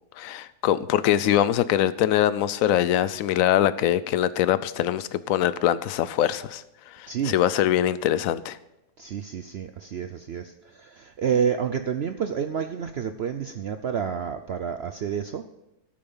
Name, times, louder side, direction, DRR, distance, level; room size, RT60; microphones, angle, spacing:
voice 1, 0.2-6.6 7.0-8.6, left 11 dB, 65° left, 15 dB, 0.9 m, -23 dB
voice 2, 9.0-15.4, right 7 dB, 85° right, 9 dB, 0.5 m, -29 dB
12.5 x 8.7 x 5.5 m, 0.95 s
omnidirectional pair, 1.8 m